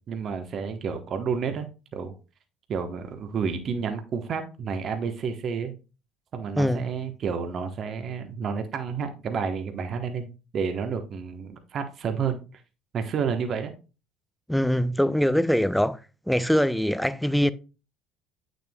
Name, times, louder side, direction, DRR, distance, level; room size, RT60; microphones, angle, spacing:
voice 1, 0.1-2.1 2.7-5.7 6.3-12.4 12.9-13.7, right 6 dB, 45° right, 1.1 m, -30 dB
voice 2, 6.6-6.9 14.5-16.0 16.3-17.5, equal, ahead, 0.6 m, -23 dB
8.6 x 6.5 x 2.3 m
hypercardioid pair, 65°, 0 cm